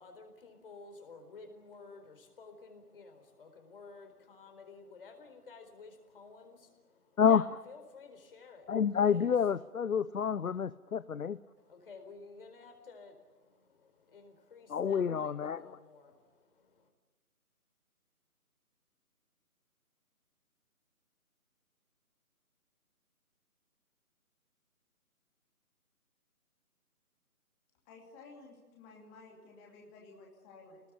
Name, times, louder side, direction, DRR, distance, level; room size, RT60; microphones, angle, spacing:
voice 1, 0.0-9.3 11.6-16.9, left 4 dB, 35° left, 6 dB, 4.4 m, -53 dB
voice 2, 8.7-11.4 14.7-15.6, left 7 dB, 65° left, 16 dB, 0.8 m, -28 dB
voice 3, 27.9-30.8, left 3 dB, 10° left, -1 dB, 2.6 m, -54 dB
26.0 x 20.0 x 8.5 m, 1.3 s
figure-of-eight pair, 165°, 45 cm